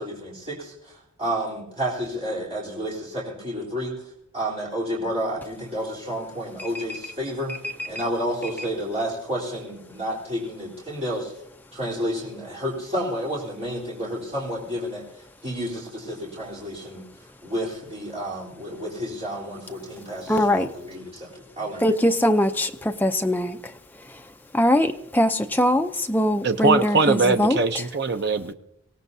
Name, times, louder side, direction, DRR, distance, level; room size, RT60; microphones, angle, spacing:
voice 1, 0.0-4.0 4.3-7.5 7.9-11.3 11.7-15.0 15.4-17.0 17.4-21.3 21.6-21.9, equal, 30° right, 3.9 m, -30 dB
voice 2, 6.6-7.0 7.8-7.9 20.3-20.7 21.8-23.7 24.5-27.6, left 1 dB, 10° left, 0.5 m, -22 dB
voice 3, 26.4-28.5, right 4 dB, 50° right, 0.7 m, -21 dB
24.0 x 17.5 x 2.7 m
head